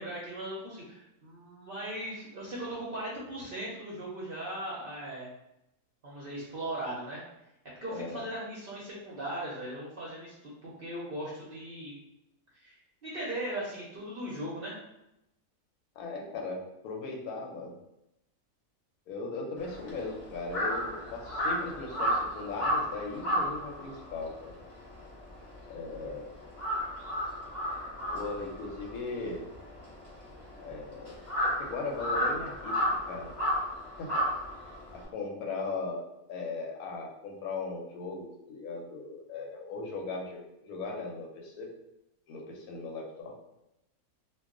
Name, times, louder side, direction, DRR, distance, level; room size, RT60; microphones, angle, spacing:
voice 1, 0.0-5.3 6.0-7.2 7.8-11.9 12.5-14.8, right 1 dB, 55° right, -6 dB, 0.6 m, -38 dB
voice 2, 7.9-8.2 16.0-17.7 19.1-24.5 25.7-26.3 28.1-29.4 30.6-31.1 31.4-33.3 34.0-34.3 34.9-41.7 42.3-43.3, left 3 dB, 80° left, 0 dB, 1.1 m, -38 dB
Crow, 19.6-26.1 26.4-35.0, equal, 30° left, 0.6 m, -32 dB
2.3 x 2.3 x 3.6 m, 0.88 s
omnidirectional pair, 1.6 m